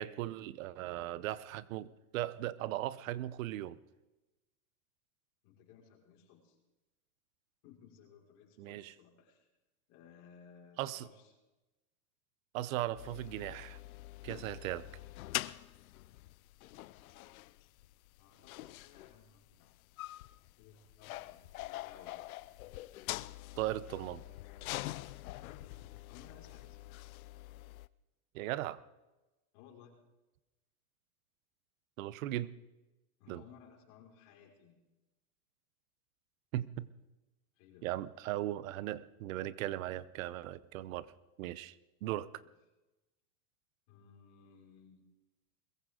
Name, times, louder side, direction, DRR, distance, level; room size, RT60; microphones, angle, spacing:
voice 1, 0.0-3.8 8.6-8.9 10.8-11.1 12.5-13.8 14.2-14.9 23.6-24.2 28.3-28.8 32.0-32.5 33.3-33.4 36.5-36.9 37.8-41.1 41.4-41.8 42.0-42.4, right 14 dB, 60° right, 18 dB, 0.9 m, -38 dB
voice 2, 5.4-6.6 7.6-9.5 9.9-11.3 18.2-20.0 20.6-22.2 25.3-25.8 26.1-27.0 29.5-30.0 33.2-34.8 37.5-37.9 43.9-45.0, left 7 dB, 50° left, -2 dB, 5.6 m, -59 dB
sound 1, 12.9-27.9, left 17 dB, 70° left, 0.7 m, -45 dB
21.5 x 15.0 x 3.9 m, 1.0 s
supercardioid pair, 140°, 45 cm